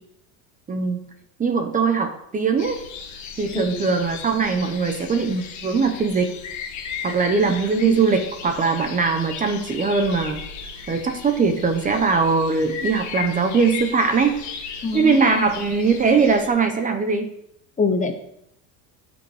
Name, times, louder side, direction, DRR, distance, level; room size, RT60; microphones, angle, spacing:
voice 1, 0.7-1.0 1.4-2.8 3.4-6.4 7.0-10.4 10.9-14.4 14.9-17.3, right 4 dB, 20° right, 7 dB, 0.8 m, -21 dB
sound 1, 2.6-16.5, left 6 dB, 40° left, 1.7 m, -36 dB
voice 2, 14.8-15.5 17.8-18.1, left 4 dB, 15° left, 5 dB, 0.8 m, -24 dB
11.0 x 5.4 x 4.9 m, 0.75 s
cardioid pair, 145°, 44 cm